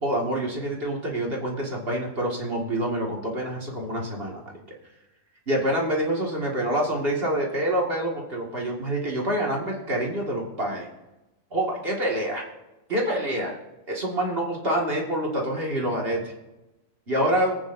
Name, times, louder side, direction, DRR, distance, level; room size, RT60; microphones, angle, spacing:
voice 1, 0.0-4.5 5.5-10.9 11.5-12.5 12.9-13.6 13.9-16.2 17.1-17.6, right 1 dB, 45° right, -1 dB, 2.2 m, -26 dB
24.5 x 8.8 x 2.7 m, 0.99 s
omnidirectional pair, 1.5 m